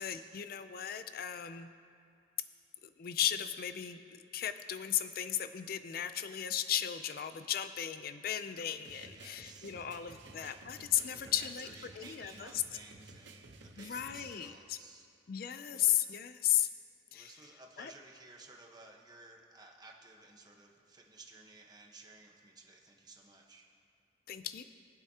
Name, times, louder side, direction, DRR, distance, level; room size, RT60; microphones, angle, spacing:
voice 1, 0.0-1.7 2.8-11.7 12.0-12.6 13.8-14.8 15.3-16.7 17.1-17.3 17.8-17.9 24.3-24.6, left 11 dB, 50° left, 10 dB, 0.4 m, -35 dB
voice 2, 8.7-10.6 11.0-15.1 15.4-15.9 17.1-23.7, right 3 dB, 20° right, 0 dB, 1.0 m, -56 dB
sound 1, 8.8-14.5, right 3 dB, 60° right, 0.8 m, -54 dB
23.0 x 8.1 x 2.8 m, 2.4 s
head